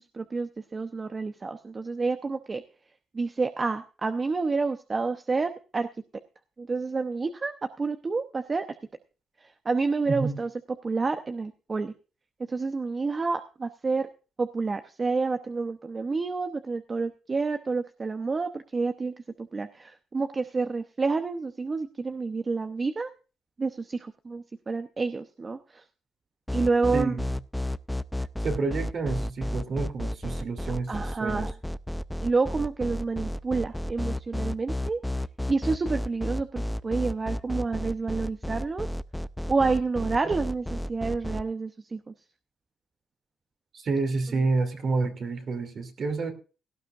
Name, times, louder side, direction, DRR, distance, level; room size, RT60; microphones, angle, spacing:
voice 1, 0.0-2.6 3.1-5.9 6.6-8.8 9.4-10.5 10.8-11.9 12.5-14.1 14.4-23.1 23.6-25.8 26.5-27.2 30.9-31.5 32.2-35.0 35.5-38.9 39.5-42.1, right 4 dB, 30° right, 8 dB, 0.8 m, -29 dB
voice 2, 10.1-10.4 26.9-27.3 28.4-31.4 40.2-40.4 43.7-46.3, right 3 dB, 50° right, 5 dB, 2.9 m, -29 dB
sound 1, 26.5-41.4, left 1 dB, 5° left, 0.5 m, -31 dB
17.5 x 12.5 x 2.5 m, 0.35 s
cardioid pair, 90°, 0 cm